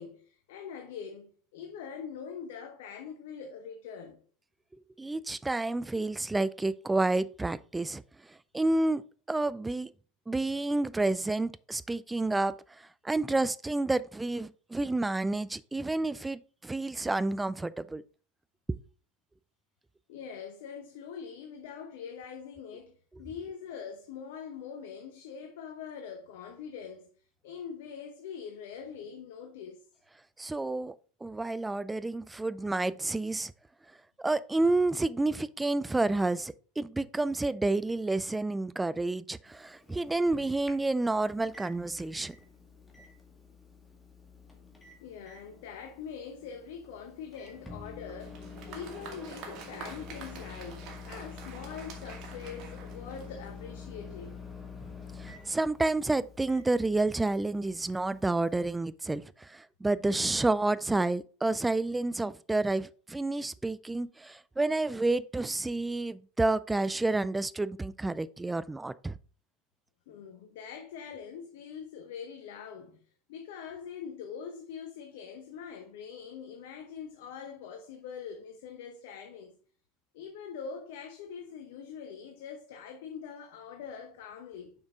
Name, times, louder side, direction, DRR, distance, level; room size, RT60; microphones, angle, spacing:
voice 1, 0.0-4.2 20.1-27.1 27.4-29.8 44.8-54.4 70.1-79.6 80.1-84.7, left 7 dB, 65° left, 1.0 m, -43 dB
voice 2, 5.0-8.0 8.5-9.0 9.3-9.9 10.3-18.0 18.7-18.8 30.4-31.0 31.2-33.5 34.2-42.4 55.2-69.2, right 2 dB, 10° right, 0.4 m, -30 dB
Microwave oven, 39.4-58.8, left 5 dB, 10° left, 2.0 m, -48 dB
Applause, 48.1-53.7, right 5 dB, 50° right, 2.1 m, -47 dB
6.2 x 5.9 x 3.7 m
hypercardioid pair, 85°, 0 cm